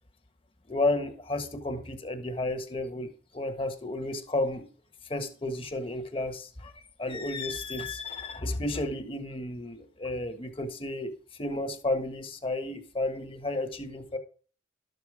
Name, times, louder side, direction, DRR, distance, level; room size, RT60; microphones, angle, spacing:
voice 1, 0.7-3.1 3.3-4.7 5.1-14.2, left 2 dB, 30° left, 6 dB, 1.4 m, -32 dB
12.5 x 6.8 x 4.8 m, 0.41 s
head